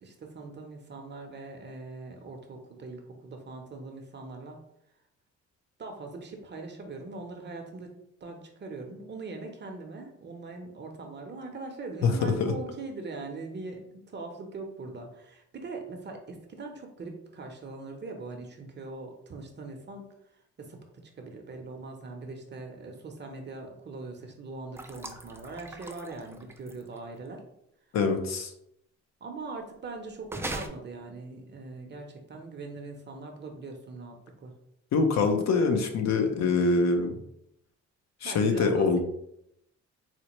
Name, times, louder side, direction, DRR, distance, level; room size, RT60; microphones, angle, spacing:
voice 1, 0.0-4.6 5.8-7.9 8.2-20.1 20.6-27.4 29.2-34.5 38.2-39.0, right 3 dB, 35° right, 3 dB, 0.7 m, -41 dB
voice 2, 12.0-12.5 27.9-28.5 34.9-37.1 38.2-39.0, left 4 dB, 60° left, 5 dB, 0.6 m, -24 dB
sound 1, 24.8-27.0 30.3-30.7, right 2 dB, 10° right, 0.3 m, -39 dB
4.2 x 2.1 x 3.0 m, 0.78 s
cardioid pair, 90°, 30 cm